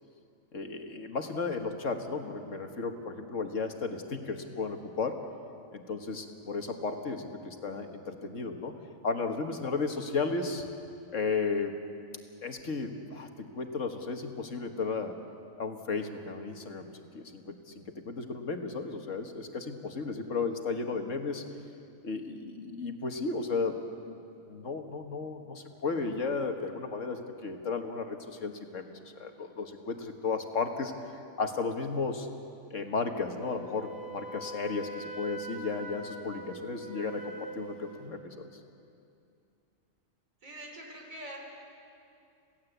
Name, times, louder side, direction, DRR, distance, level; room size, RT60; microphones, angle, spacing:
voice 1, 0.5-5.2 5.7-8.7 9.0-10.7 11.1-11.7 12.4-15.2 15.6-21.4 22.0-23.8 24.1-24.2 24.5-32.3 32.7-38.6, left 4 dB, 65° left, 5 dB, 1.9 m, -34 dB
Wind instrument woodwind instrument, 33.4-38.1, right 1 dB, 35° right, 2.8 m, -43 dB
voice 2, 40.4-41.4, right 1 dB, 80° right, 1 dB, 4.3 m, -44 dB
27.0 x 17.0 x 8.1 m, 2.5 s
omnidirectional pair, 1.4 m